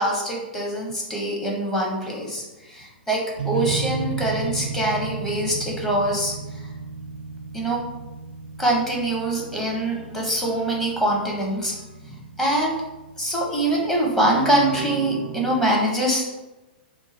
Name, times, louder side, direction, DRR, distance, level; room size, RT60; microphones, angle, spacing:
voice 1, 0.0-2.4 2.7-6.3 7.5-7.8 8.6-11.7 12.4-12.8 13.2-16.4, right 1 dB, 5° left, -4 dB, 0.8 m, -24 dB
sound 1, 3.1-15.6, right 5 dB, 75° right, 0.4 m, -34 dB
2.7 x 2.3 x 4.0 m, 1.0 s
figure-of-eight pair, 105°, 5 cm